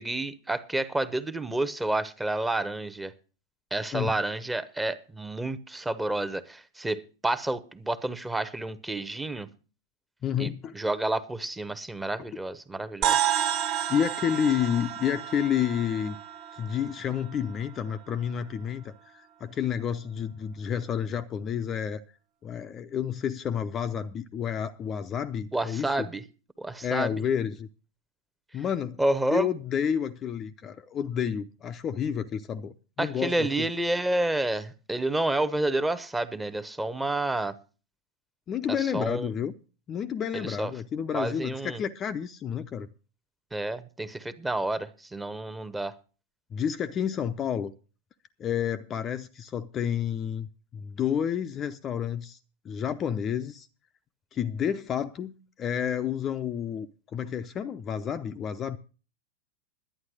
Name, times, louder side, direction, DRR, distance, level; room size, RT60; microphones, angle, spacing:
voice 1, 0.0-3.1 3.7-9.5 10.4-13.2 25.5-26.2 26.6-27.1 29.0-29.5 33.0-37.5 38.8-39.3 40.3-40.7 41.1-41.8 43.5-45.9, right 2 dB, 10° right, 1.0 m, -29 dB
voice 2, 10.2-10.8 13.9-16.2 16.6-22.0 22.4-25.9 26.8-27.7 28.5-29.0 29.3-33.7 38.5-39.5 39.9-42.9 46.5-47.7 48.4-50.5 50.7-52.4 52.6-53.7 54.3-58.8, left 8 dB, 25° left, 0.6 m, -30 dB
sound 1, 13.0-17.6, right 10 dB, 40° right, 1.3 m, -30 dB
11.5 x 9.4 x 6.3 m
figure-of-eight pair, 90°, 0 cm